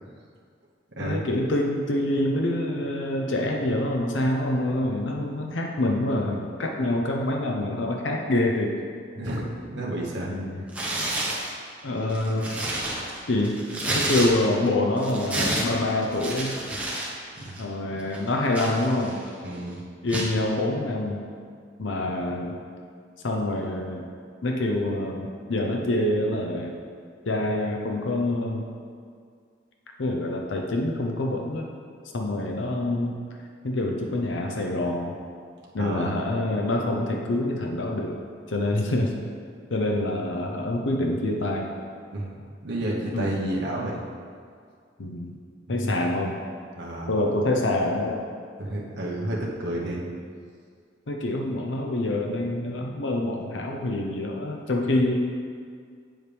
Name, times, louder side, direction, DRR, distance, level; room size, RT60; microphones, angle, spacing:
voice 1, 1.0-8.8 10.3-10.6 11.8-12.5 13.3-16.6 17.6-19.2 20.0-21.2 21.8-22.6 23.2-24.0 24.4-26.8 27.3-28.7 30.0-31.7 32.1-33.2 33.6-35.2 35.7-38.2 38.5-39.1 39.7-41.8 43.1-43.4 45.0-45.4 45.7-46.4 47.1-48.3 50.1-50.2 51.1-55.3, left 1 dB, 85° left, 1 dB, 0.7 m, -26 dB
voice 2, 9.2-10.3 17.4-17.6 19.4-19.8 35.8-36.2 42.1-42.3 42.6-44.0 45.7-45.9 46.8-47.1 48.6-50.0, right 1 dB, 65° right, -4 dB, 1.1 m, -30 dB
Tearing, 10.7-11.5 12.0-14.7 15.0-17.1 17.4-17.6 18.1-19.3 20.1-20.4, right 1 dB, 10° right, 1.2 m, -29 dB
8.4 x 7.2 x 3.4 m, 2.1 s
head